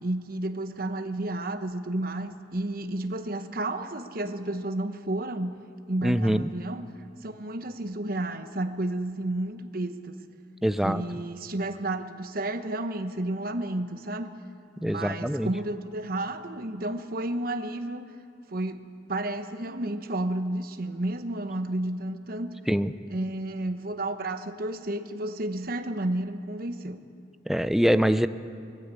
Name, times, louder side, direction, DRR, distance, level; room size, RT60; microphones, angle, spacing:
voice 1, 0.0-5.5 5.9-6.8 7.2-10.2 10.8-14.3 14.8-18.1 18.5-22.6 23.1-27.0, right 1 dB, 50° right, 8 dB, 1.0 m, -31 dB
voice 2, 6.0-6.5 10.6-11.0 14.8-15.5 22.7-22.9 27.5-28.3, equal, ahead, 12 dB, 0.4 m, -24 dB
20.5 x 15.0 x 8.3 m, 2.5 s
head